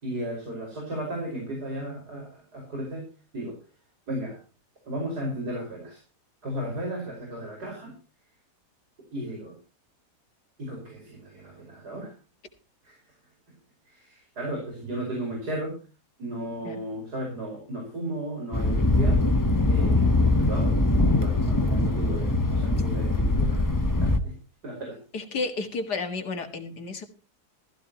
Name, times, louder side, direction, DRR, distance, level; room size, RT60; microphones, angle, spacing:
voice 1, 0.0-3.1 3.3-3.6 4.1-4.4 4.9-6.0 6.4-7.9 9.1-9.5 10.6-12.1 12.8-13.0 13.9-15.8 16.2-19.2 19.7-23.7 24.0-24.3 24.6-25.0, right 1 dB, 75° right, -1 dB, 5.6 m, -35 dB
Thunder, 18.5-24.2, left 2 dB, 15° left, 0.8 m, -22 dB
voice 2, 25.1-27.1, left 3 dB, 80° left, 5 dB, 2.4 m, -32 dB
16.0 x 14.5 x 3.0 m, 0.34 s
omnidirectional pair, 1.7 m